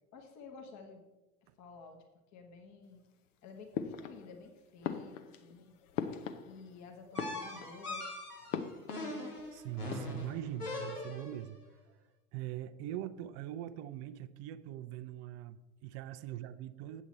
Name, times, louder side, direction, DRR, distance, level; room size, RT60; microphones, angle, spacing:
voice 1, 0.1-1.0 1.6-2.0 2.3-3.0 3.4-5.7 6.4-8.1, left 4 dB, 40° left, 4 dB, 1.4 m, -52 dB
sound 1, 3.7-4.5 4.8-6.8 7.1-7.9 8.5-9.5 9.7-10.3, left 8 dB, 55° left, 0.9 m, -40 dB
sound 2, 7.1-11.4, left 2 dB, 85° left, 2.4 m, -41 dB
voice 2, 9.5-11.6 12.3-17.0, right 12 dB, 35° right, 13 dB, 0.5 m, -42 dB
8.1 x 8.1 x 4.4 m, 1.1 s
figure-of-eight pair, 80°, 45 cm